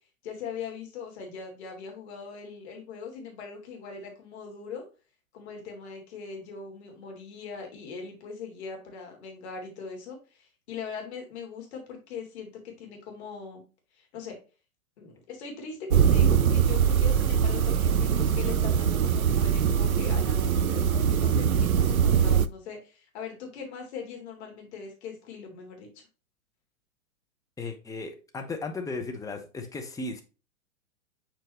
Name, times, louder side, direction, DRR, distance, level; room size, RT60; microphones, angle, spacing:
voice 1, 0.2-4.8 5.3-13.6 13.9-14.4 15.0-25.9, left 5 dB, 50° left, 1 dB, 3.0 m, -41 dB
sound 1, 15.9-22.5, right 7 dB, 85° right, 0.6 m, -22 dB
voice 2, 27.6-30.2, left 3 dB, 10° left, 3 dB, 0.9 m, -35 dB
7.6 x 4.5 x 3.0 m, 0.33 s
figure-of-eight pair, 110°, 41 cm